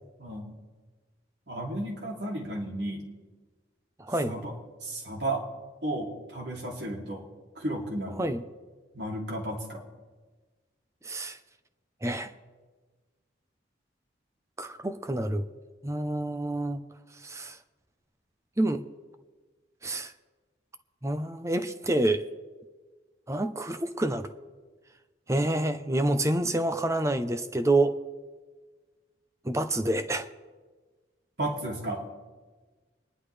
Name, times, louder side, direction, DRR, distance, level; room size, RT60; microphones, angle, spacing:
voice 1, 0.2-0.5 1.5-3.1 4.3-4.5 4.8-5.4 5.8-7.2 7.5-8.2 8.9-9.8 31.4-32.0, right 1 dB, 60° right, -1 dB, 2.9 m, -33 dB
voice 2, 4.0-4.4 8.2-8.4 11.0-11.4 12.0-12.3 14.6-15.4 15.8-16.8 17.2-17.6 18.6-18.8 19.8-20.1 21.0-22.3 23.3-24.3 25.3-28.0 29.4-30.3, right 1 dB, 15° right, 9 dB, 0.7 m, -27 dB
28.5 x 10.5 x 3.4 m, 1.4 s
head